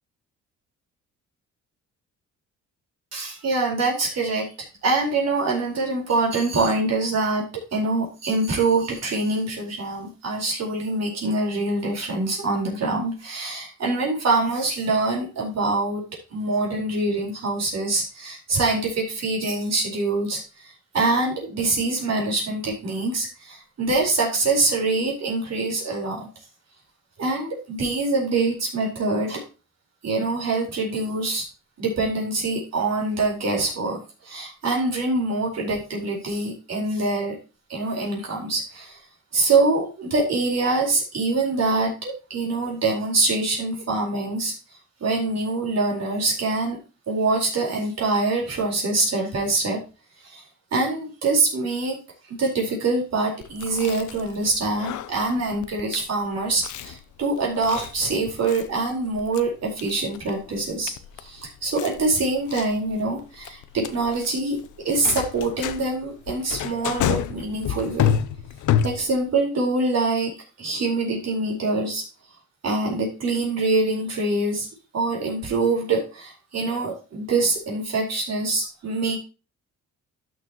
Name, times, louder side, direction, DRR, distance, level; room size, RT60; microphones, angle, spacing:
voice 1, 3.1-4.5 4.8-7.4 7.7-16.0 16.3-20.4 20.9-26.3 27.2-29.4 30.0-31.4 31.8-37.3 37.7-39.0 39.3-44.5 45.0-46.8 47.1-49.8 50.2-50.4 50.7-52.0 52.4-60.9 61.2-64.6 64.8-68.1 68.8-70.3 70.6-72.0 72.6-74.7 74.9-79.2, right 3 dB, 60° right, -2 dB, 4.3 m, -24 dB
Chewing mastication, 53.4-69.3, left 9 dB, 75° left, 0.7 m, -30 dB
12.5 x 6.5 x 3.0 m, 0.32 s
cardioid pair, 90°, 30 cm